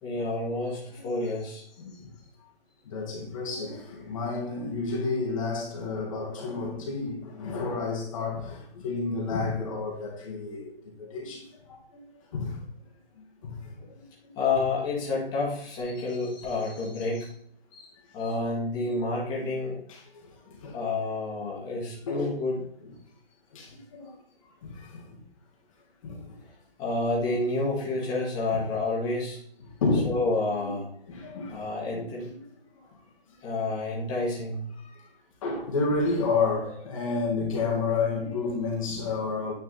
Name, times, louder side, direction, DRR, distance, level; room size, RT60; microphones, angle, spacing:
voice 1, 0.0-1.6 14.4-17.3 17.7-19.8 20.7-22.7 26.8-29.4 30.0-30.9 31.5-32.3 33.4-34.6, left 3 dB, 15° left, -4 dB, 2.0 m, -29 dB
voice 2, 1.8-2.2 2.9-12.6 13.2-14.0 14.3-14.4 19.4-19.5 19.9-20.8 22.0-22.3 22.8-22.9 23.5-24.2 24.4-25.3 26.0-26.4 28.5-28.6 29.6-30.8 31.1-32.3 32.7-32.8 33.3-33.4 34.8-35.1 35.4-39.5, left 3 dB, 35° left, -2 dB, 1.9 m, -31 dB
9.5 x 4.7 x 4.1 m, 0.64 s
figure-of-eight pair, 150°, 29 cm